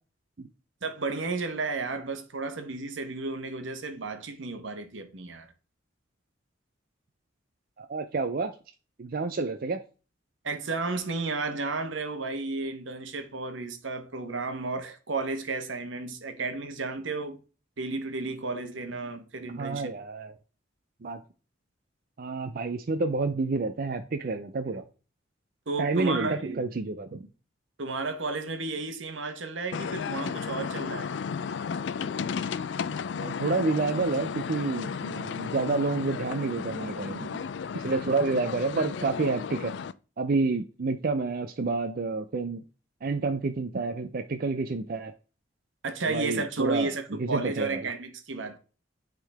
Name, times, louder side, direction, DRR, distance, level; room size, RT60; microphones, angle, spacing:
voice 1, 0.8-5.5 10.4-17.4 17.8-19.9 25.7-26.6 27.8-31.1 45.8-48.6, right 3 dB, 80° right, 1.1 m, -33 dB
voice 2, 7.8-8.5 9.0-9.8 19.6-20.3 21.0-21.2 22.2-24.8 25.8-27.3 33.2-37.3 37.7-39.7 40.2-42.6 43.0-45.1 46.0-46.9 47.2-47.9, right 3 dB, 50° right, 0.5 m, -29 dB
sound 1, 29.7-39.9, left 6 dB, 65° left, 0.4 m, -34 dB
9.9 x 3.8 x 3.4 m
head